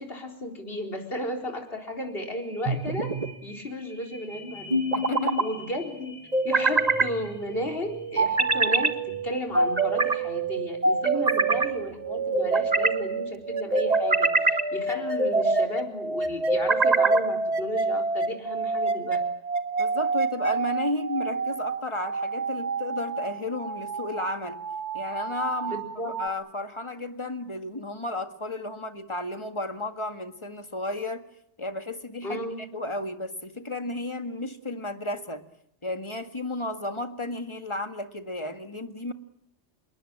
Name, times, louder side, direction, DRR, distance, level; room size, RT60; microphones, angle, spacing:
voice 1, 0.0-3.1 3.4-4.8 5.4-6.2 6.4-9.0 9.2-19.2 25.7-26.1 32.2-32.6, left 1 dB, 55° left, 3 dB, 4.5 m, -34 dB
sound 1, 1.8-17.8 18.3-18.4, left 1 dB, 10° left, 6.5 m, -49 dB
sound 2, 2.7-3.3 4.7-5.5 6.3-7.1 8.2-8.9 9.5-10.2 10.8-11.7 12.3-13.0 13.7-14.6 15.2-15.7 16.5-17.3, right 3 dB, 35° right, 1.7 m, -23 dB
voice 2, 4.9-5.4 11.1-11.6 19.8-24.6 24.9-31.2 31.6-35.4 35.8-39.1, left 2 dB, 25° left, 7 dB, 2.0 m, -33 dB
sound 3, 7.1-26.3, right 4 dB, 70° right, 1.8 m, -31 dB
27.5 x 22.0 x 8.9 m, 0.76 s
omnidirectional pair, 1.2 m